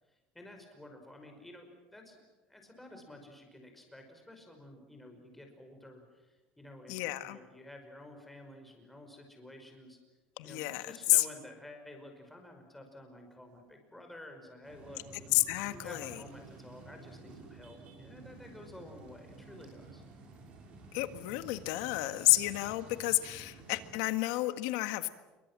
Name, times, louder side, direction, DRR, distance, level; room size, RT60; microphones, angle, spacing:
voice 1, 0.1-2.2 2.5-10.0 10.4-15.0 15.7-20.0, left 1 dB, 5° left, 4 dB, 5.4 m, -51 dB
voice 2, 6.9-7.4 10.4-11.3 15.3-16.2 20.9-25.1, left 19 dB, 85° left, 10 dB, 1.7 m, -30 dB
sound 1, 14.6-24.0, right 3 dB, 45° right, 5.9 m, -52 dB
28.0 x 23.5 x 7.6 m, 1.2 s
cardioid pair, 155°, 3 cm